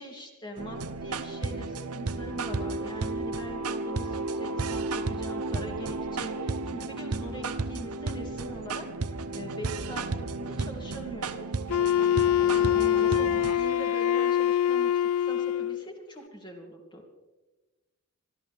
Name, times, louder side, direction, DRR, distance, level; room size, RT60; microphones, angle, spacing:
voice 1, 0.0-11.5 12.4-17.0, equal, 20° left, 1 dB, 2.7 m, -42 dB
sound 1, 0.6-13.5, right 3 dB, 85° right, 0.9 m, -33 dB
Wind instrument woodwind instrument, 11.7-15.8, left 10 dB, 70° left, 0.4 m, -24 dB
25.0 x 13.0 x 3.5 m, 1.1 s
head